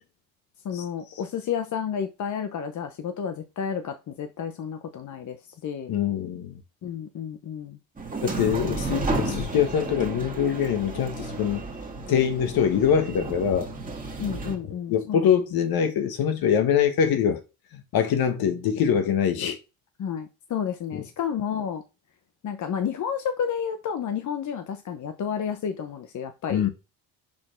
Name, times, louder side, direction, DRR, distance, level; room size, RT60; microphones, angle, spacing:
voice 1, 0.6-5.9 6.8-7.8 8.6-9.5 14.2-15.3 20.0-21.8 22.4-26.6, left 7 dB, 45° left, 0.8 m, -31 dB
voice 2, 5.9-6.6 8.2-11.6 12.1-13.7 14.9-17.4 17.7-19.6 20.9-21.0 26.5-26.7, left 8 dB, 60° left, 1.5 m, -24 dB
sound 1, 8.0-14.6, right 2 dB, 20° right, 1.9 m, -32 dB
6.0 x 4.5 x 4.4 m
supercardioid pair, 90°, 41 cm